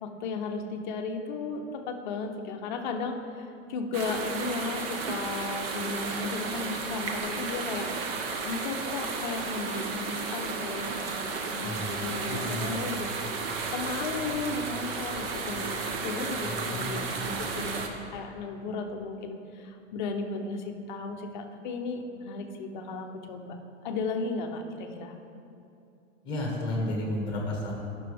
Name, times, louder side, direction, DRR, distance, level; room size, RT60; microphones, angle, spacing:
voice 1, 0.0-13.1 13.7-23.6 23.8-25.2, left 4 dB, 40° left, 4 dB, 0.6 m, -35 dB
sound 1, 3.9-17.9, right 4 dB, 50° right, 0.8 m, -33 dB
voice 2, 11.6-12.0 12.3-12.8 16.4-17.4 26.2-27.7, left 1 dB, 10° left, -1 dB, 1.3 m, -33 dB
11.5 x 6.0 x 3.4 m, 2.6 s
supercardioid pair, 170°, 37 cm